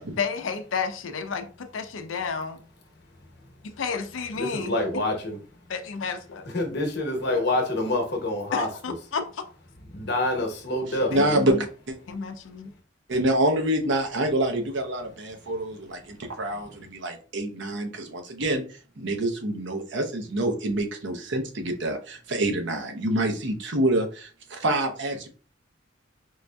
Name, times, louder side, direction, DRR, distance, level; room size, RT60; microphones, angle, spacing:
voice 1, 0.2-2.6 3.6-4.7 5.7-6.5 8.5-9.4 11.1-11.6 12.1-12.7, left 5 dB, 85° left, 0.5 m, -31 dB
voice 2, 4.4-5.4 6.4-8.7 9.9-11.4, left 2 dB, 60° left, 0.9 m, -27 dB
voice 3, 11.1-12.0 13.1-18.6 19.0-25.3, right 1 dB, 65° right, 0.7 m, -26 dB
4.6 x 2.6 x 2.2 m
head